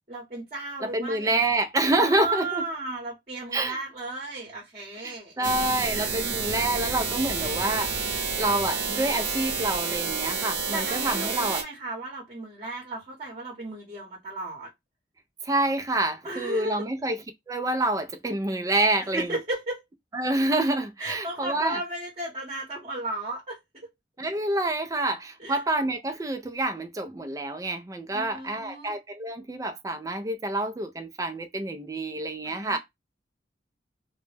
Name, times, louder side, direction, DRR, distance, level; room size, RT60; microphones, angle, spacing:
voice 1, 0.1-1.5 2.0-5.5 5.9-6.1 10.7-14.7 16.2-16.8 19.1-19.8 21.0-23.6 25.4-25.6 28.1-28.9 32.4-32.8, right 2 dB, 35° right, 0.8 m, -35 dB
voice 2, 0.8-2.6 3.5-3.8 5.0-8.1 8.4-11.6 15.4-17.2 17.5-19.4 20.1-21.8 24.2-32.8, right 2 dB, 20° right, 0.3 m, -27 dB
sound 1, 5.4-11.6, right 5 dB, 65° right, 0.7 m, -29 dB
2.1 x 2.1 x 3.2 m
head